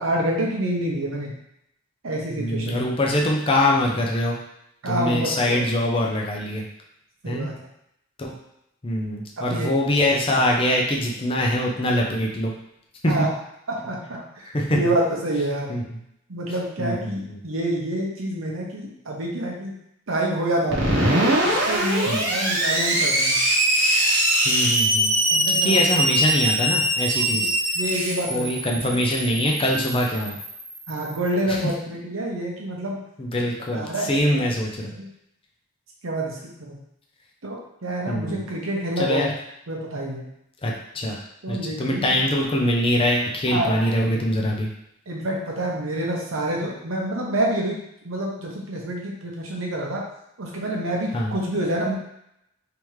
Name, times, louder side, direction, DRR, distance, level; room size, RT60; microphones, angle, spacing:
voice 1, 0.0-1.4 2.0-2.9 4.8-5.7 7.2-7.5 9.4-9.7 13.1-13.3 13.7-15.8 16.3-19.7 20.1-20.8 21.1-23.4 25.3-25.8 27.3-27.5 27.7-28.5 30.9-33.0 33.7-34.5 35.0-35.1 36.0-36.8 37.4-39.2 39.7-40.3 41.4-42.2 43.5-43.8 45.1-47.8 48.0-50.0 50.4-51.9, right 1 dB, 85° right, -2 dB, 0.9 m, -27 dB
voice 2, 2.4-4.4 4.9-6.6 7.3-7.5 8.2-8.3 8.8-12.5 13.0-13.1 14.5-14.8 15.7-15.8 16.8-17.4 21.0-21.1 22.1-22.2 24.4-25.1 25.5-27.5 28.3-30.4 31.5-31.6 33.2-34.9 38.1-38.5 39.0-39.3 40.6-41.2 41.5-44.7 51.1-51.3, left 1 dB, 25° left, -1 dB, 0.6 m, -23 dB
Screech, 20.7-31.2, right 1 dB, 60° right, 1.0 m, -22 dB
3.5 x 2.9 x 3.1 m, 0.78 s
head